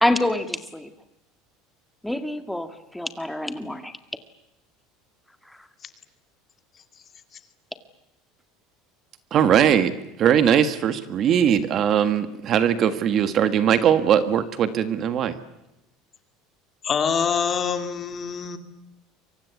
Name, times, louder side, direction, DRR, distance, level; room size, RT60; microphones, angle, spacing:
voice 1, 0.0-0.9 2.0-3.9, left 1 dB, 5° left, 9 dB, 2.0 m, -26 dB
voice 2, 9.3-9.9 10.2-15.3, right 9 dB, 35° right, 12 dB, 1.6 m, -20 dB
voice 3, 16.8-18.6, left 6 dB, 25° left, 9 dB, 2.3 m, -25 dB
28.5 x 24.5 x 8.3 m, 0.90 s
cardioid pair, 150°, 0 cm